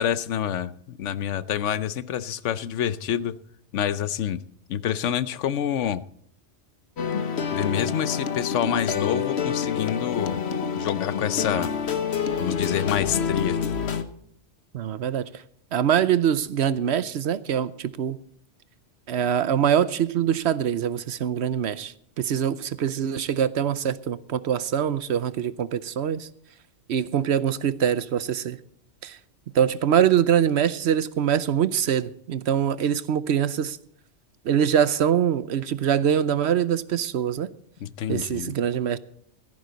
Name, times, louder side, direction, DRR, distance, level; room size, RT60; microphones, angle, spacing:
voice 1, 0.0-3.4 3.7-4.4 4.7-6.0 7.5-10.4 10.8-11.7 12.4-13.6 37.8-38.5, left 9 dB, 85° left, 1.0 m, -27 dB
sound 1, 7.0-14.0, left 6 dB, 65° left, 1.2 m, -27 dB
voice 2, 14.7-15.3 15.7-18.2 19.1-26.3 26.9-28.6 29.0-29.2 29.5-33.8 34.4-37.5 38.1-39.0, right 9 dB, 70° right, 0.9 m, -24 dB
15.5 x 14.5 x 4.0 m
omnidirectional pair, 1.2 m